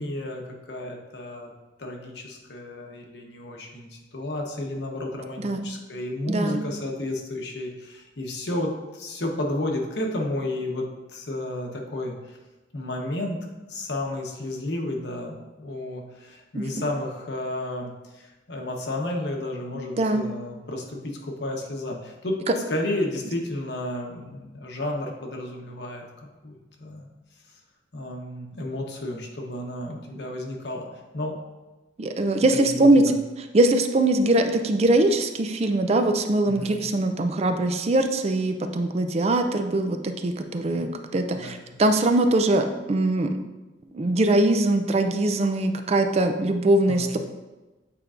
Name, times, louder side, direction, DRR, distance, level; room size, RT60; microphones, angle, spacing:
voice 1, 0.0-1.5 1.8-10.9 11.1-12.1 12.7-26.1 26.4-27.1 27.9-30.9 31.1-31.4 32.5-33.1 36.5-36.9 41.3-41.7 46.9-47.2, left 1 dB, 70° left, 1 dB, 1.0 m, -32 dB
voice 2, 6.3-6.7 16.5-16.8 20.0-20.3 32.0-33.0 33.5-43.3 43.9-47.2, right 2 dB, 35° right, 6 dB, 0.4 m, -22 dB
8.6 x 4.5 x 2.5 m, 1.1 s
head